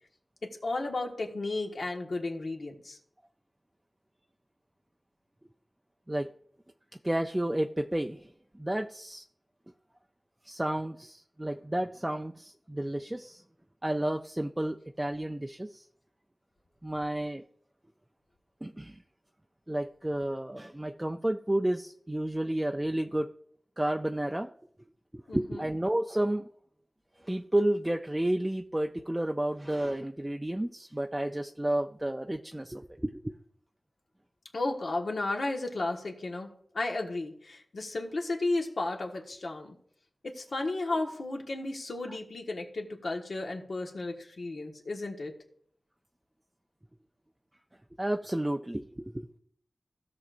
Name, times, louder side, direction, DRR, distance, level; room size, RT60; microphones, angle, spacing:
voice 1, 0.4-3.0 25.3-25.6 34.5-36.5 36.7-39.7 40.2-45.3, left 2 dB, 80° left, 1 dB, 1.4 m, -33 dB
voice 2, 7.0-8.2 8.6-9.2 10.5-13.4 13.8-15.8 16.8-17.4 18.6-19.0 19.7-23.3 23.8-24.5 25.1-26.5 27.2-33.3 48.0-49.3, right 1 dB, 15° right, 4 dB, 0.4 m, -31 dB
16.0 x 6.5 x 2.5 m, 0.63 s
wide cardioid pair, 80°, 0 cm